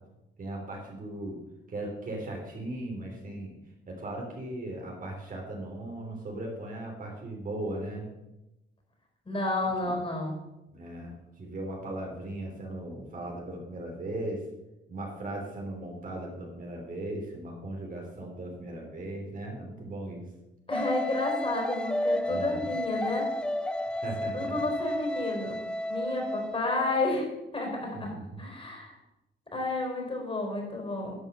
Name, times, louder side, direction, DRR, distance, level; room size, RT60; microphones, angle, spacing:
voice 1, 0.4-1.4 1.7-3.6 3.9-8.0 9.8-9.9 10.7-14.4 14.9-20.3 22.2-22.7 23.9-24.7 27.9-28.2, right 1 dB, 45° right, 0 dB, 3.3 m, -38 dB
voice 2, 9.2-10.4 20.7-23.3 24.3-25.6 25.9-29.0 29.5-31.1, left 2 dB, 25° left, 1 dB, 4.7 m, -31 dB
sound 1, 20.7-27.0, left 1 dB, 5° left, 0.5 m, -32 dB
11.0 x 5.6 x 6.6 m, 0.94 s
cardioid pair, 90°, 20 cm